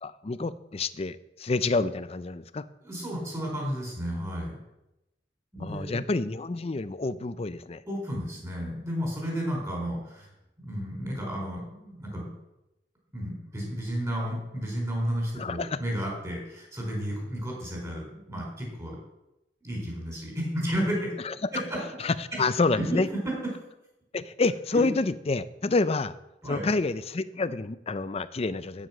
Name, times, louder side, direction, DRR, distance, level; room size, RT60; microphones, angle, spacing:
voice 1, 0.0-2.7 5.6-7.8 15.4-15.8 21.2-21.5 22.0-23.1 24.1-26.2 26.4-28.9, left 3 dB, 35° left, 14 dB, 0.5 m, -28 dB
voice 2, 2.8-4.6 5.5-6.0 7.9-10.3 10.6-12.3 13.1-19.0 19.6-21.1 21.5-21.8 22.8-23.0 24.7-24.8 26.4-26.6, equal, 20° right, -2 dB, 4.5 m, -32 dB
9.3 x 9.1 x 6.0 m, 0.91 s
head